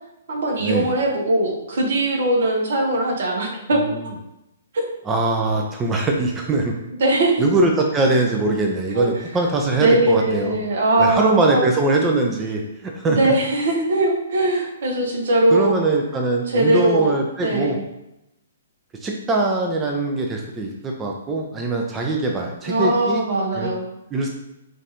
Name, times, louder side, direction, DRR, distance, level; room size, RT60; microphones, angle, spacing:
voice 1, 0.3-4.1 4.7-5.0 7.0-7.4 8.9-9.2 9.8-11.7 13.0-15.7 16.5-17.8 22.7-23.8, right 1 dB, 65° right, 1 dB, 1.0 m, -20 dB
voice 2, 5.1-6.7 7.4-10.6 11.0-13.3 15.5-17.8 19.0-23.2 23.5-23.7 24.1-24.3, right 2 dB, 15° right, 1 dB, 0.5 m, -22 dB
5.1 x 2.6 x 2.9 m, 0.89 s
hypercardioid pair, 130°, 0 cm